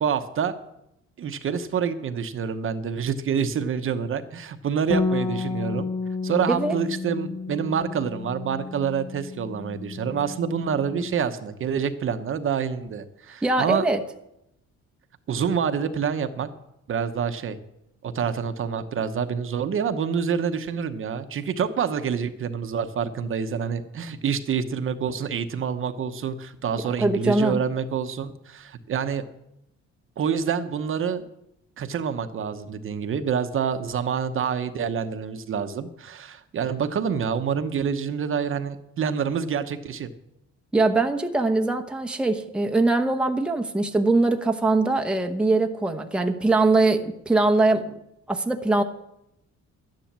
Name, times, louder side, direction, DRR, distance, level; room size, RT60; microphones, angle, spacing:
voice 1, 0.0-0.5 1.2-5.9 6.2-13.8 15.3-16.5 16.9-17.6 18.0-29.2 30.2-31.2 31.8-40.1, right 7 dB, 45° right, 9 dB, 0.9 m, -27 dB
Bass guitar, 4.9-11.2, left 4 dB, 10° left, 0.5 m, -31 dB
voice 2, 13.4-14.0 27.0-27.6 40.7-48.0 48.3-48.8, right 2 dB, 5° right, 4 dB, 0.8 m, -22 dB
12.5 x 10.5 x 7.4 m, 0.81 s
cardioid pair, 155°, 29 cm